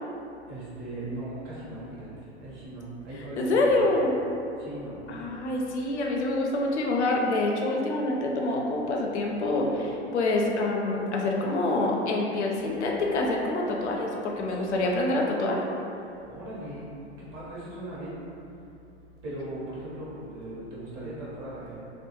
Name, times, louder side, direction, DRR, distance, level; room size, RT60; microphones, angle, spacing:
voice 1, 0.5-4.0 4.6-5.1 14.5-14.6 16.2-16.9 17.2-18.2 19.2-21.8, right 1 dB, 35° right, -7 dB, 0.8 m, -39 dB
voice 2, 3.4-4.2 5.1-15.6, left 2 dB, 75° left, -1 dB, 0.5 m, -26 dB
2.2 x 2.0 x 3.0 m, 2.8 s
figure-of-eight pair, 95°, 35 cm